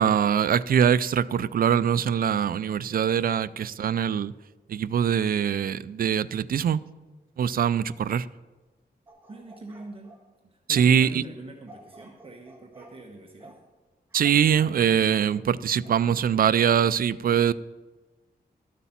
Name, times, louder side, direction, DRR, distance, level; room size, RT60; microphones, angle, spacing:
voice 1, 0.0-4.3 4.7-6.8 7.4-8.3 10.7-11.2 14.1-17.5, right 8 dB, 60° right, 0.4 m, -23 dB
sound 1, 9.1-10.2 10.7-11.0 11.7-13.0 13.4-13.6 14.1-15.3 15.8-15.9, right 2 dB, 15° right, 1.9 m, -51 dB
voice 2, 9.3-10.1 10.4-13.6, right 2 dB, 35° right, 1.1 m, -43 dB
12.5 x 8.3 x 5.8 m
wide cardioid pair, 145°, 17 cm